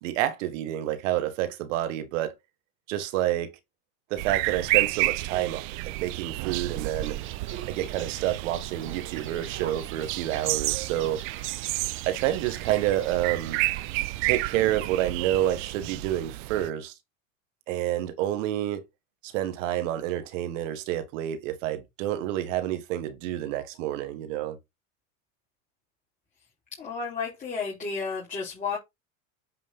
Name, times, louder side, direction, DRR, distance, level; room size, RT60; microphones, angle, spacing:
voice 1, 0.0-2.3 2.9-3.6 4.1-7.2 7.7-11.2 12.0-13.6 14.2-16.9 17.7-18.9 19.2-24.6, right 13 dB, 65° right, 1.6 m, -28 dB
sound 1, 4.2-16.7, right 21 dB, 50° right, 0.5 m, -31 dB
sound 2, 7.0-15.4, right 10 dB, 30° right, 1.3 m, -44 dB
voice 2, 26.8-28.8, left 5 dB, 20° left, 3.6 m, -32 dB
8.6 x 4.9 x 3.8 m
supercardioid pair, 135°, 40 cm